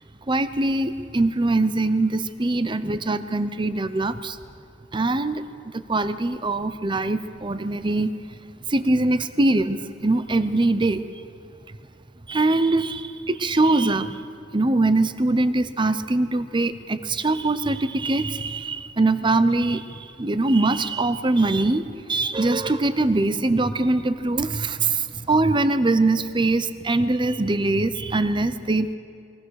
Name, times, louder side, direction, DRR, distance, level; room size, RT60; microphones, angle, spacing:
voice 1, 0.3-4.4 4.9-5.4 5.7-8.1 8.7-11.0 12.3-14.2 14.5-21.8 22.1-28.9, right 2 dB, 25° right, 12 dB, 0.7 m, -22 dB
22.5 x 20.0 x 6.5 m, 2.4 s
head